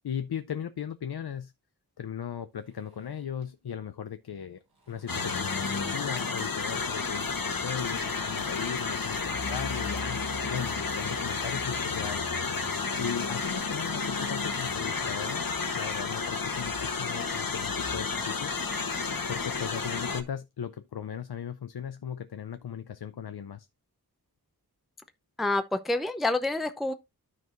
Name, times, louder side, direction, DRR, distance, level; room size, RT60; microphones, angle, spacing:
voice 1, 0.0-1.5 2.0-10.2 10.5-12.3 13.0-15.5 15.7-18.5 19.3-23.7, left 8 dB, 80° left, 0.6 m, -37 dB
Zipper (clothing), 2.5-3.6 3.9-4.1 4.4-6.0 6.3-7.3 7.9-8.0 8.6-8.7 9.1-9.2 9.5-9.6 9.8-9.9 10.5-10.9 11.3-11.4 11.6-12.9 13.9-15.5 16.1-17.5, right 2 dB, 75° right, 4.8 m, -56 dB
sound 1, 5.1-20.2, left 4 dB, 65° left, 1.2 m, -31 dB
voice 2, 25.4-26.9, left 2 dB, ahead, 0.6 m, -28 dB
13.0 x 4.7 x 2.5 m
wide cardioid pair, 70°, 38 cm